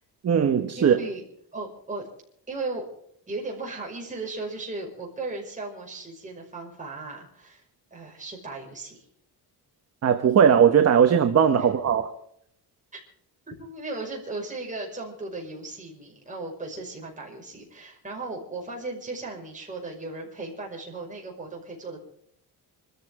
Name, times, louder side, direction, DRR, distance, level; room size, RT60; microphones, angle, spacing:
voice 1, 0.2-1.0 10.0-12.1, right 7 dB, 40° right, 6 dB, 1.1 m, -19 dB
voice 2, 0.8-1.2 1.5-2.1 2.5-2.8 3.3-7.6 7.9-9.1 11.6-11.7 12.9-13.0 13.5-22.0, right 3 dB, 20° right, -1 dB, 5.6 m, -36 dB
26.0 x 14.0 x 3.7 m, 0.69 s
wide cardioid pair, 175°, 41 cm